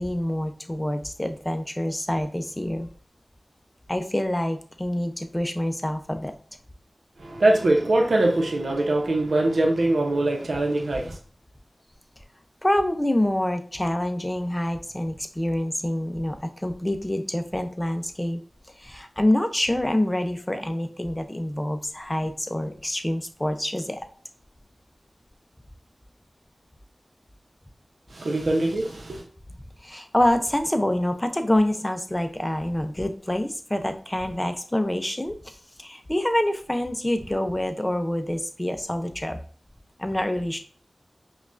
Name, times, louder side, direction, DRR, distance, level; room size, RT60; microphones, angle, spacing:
voice 1, 0.0-2.9 3.9-6.3 12.6-18.4 18.8-24.0 29.8-39.4 40.0-40.6, left 1 dB, 20° left, 0.5 m, -26 dB
voice 2, 7.2-11.2 28.1-29.2, right 2 dB, 80° right, 0.7 m, -22 dB
5.1 x 2.4 x 2.5 m
cardioid pair, 40°, 0 cm